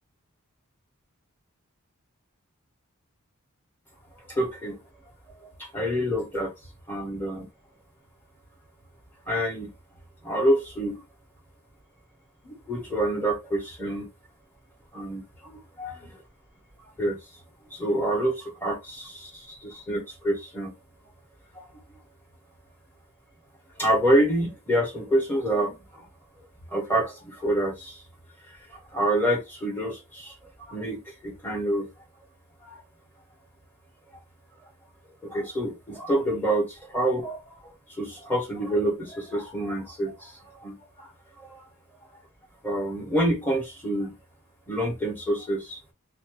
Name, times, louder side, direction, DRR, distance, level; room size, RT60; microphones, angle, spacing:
voice 1, 4.3-4.8 5.4-6.5 6.9-7.5 9.3-9.7 10.2-11.0 12.4-14.1 14.9-16.2 17.0-17.2 17.7-20.7 21.5-21.6 23.8-26.1 26.7-28.0 28.7-30.3 30.7-31.9 32.6-32.8 35.2-37.6 37.9-41.1 41.4-41.6 42.6-44.2 44.7-45.8, right 1 dB, 10° left, 1.4 m, -27 dB
3.9 x 3.1 x 3.1 m
head